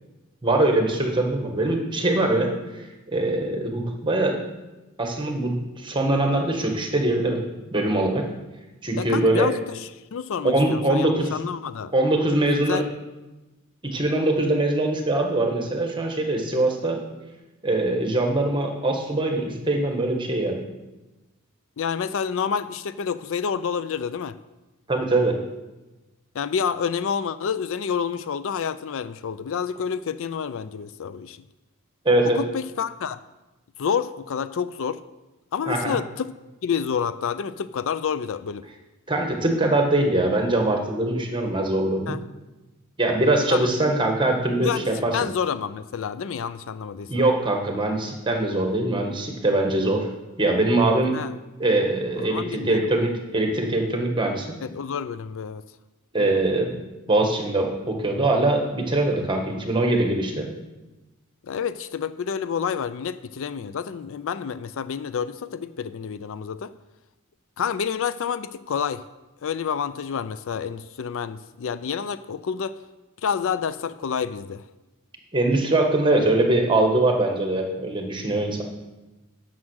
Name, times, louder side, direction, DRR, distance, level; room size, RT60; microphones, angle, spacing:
voice 1, 0.4-2.5 3.1-4.4 5.0-7.4 7.7-8.3 8.8-9.5 10.4-11.3 11.9-12.8 13.8-17.0 17.6-20.6 24.9-25.4 32.0-32.4 35.7-36.0 39.1-42.1 43.0-45.1 47.1-50.1 50.4-51.1 51.6-54.5 56.1-56.8 57.1-60.5 75.3-78.6, right 2 dB, 20° right, 3 dB, 1.4 m, -22 dB
voice 2, 9.0-9.6 10.1-11.9 12.7-12.9 21.8-24.4 26.3-31.4 32.3-33.2 33.8-35.0 35.5-36.3 36.6-38.6 42.1-42.2 43.5-43.7 44.6-47.1 51.1-51.3 52.2-52.7 54.6-55.6 56.2-56.4 61.5-66.7 67.6-69.0 69.4-72.8 73.2-74.6, left 7 dB, 65° left, 14 dB, 0.4 m, -28 dB
9.6 x 6.2 x 6.3 m, 1.1 s
head